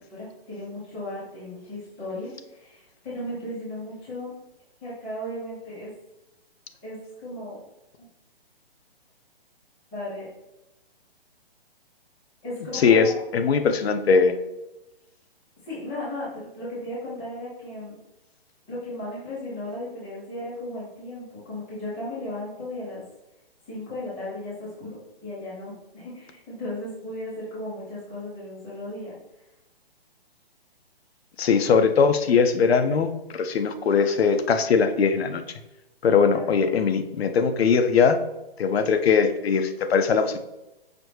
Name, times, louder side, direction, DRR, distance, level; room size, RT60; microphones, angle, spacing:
voice 1, 0.1-4.3 4.8-5.9 6.8-7.6 9.9-10.3 12.4-13.2 15.6-18.0 18.7-23.0 23.7-29.2 36.1-36.7, left 1 dB, 5° left, -11 dB, 0.3 m, -36 dB
voice 2, 12.8-14.4 31.4-35.4 36.0-38.2 38.6-40.4, left 5 dB, 85° left, 8 dB, 0.5 m, -20 dB
5.0 x 2.0 x 3.1 m, 0.94 s
hypercardioid pair, 150°, 30 cm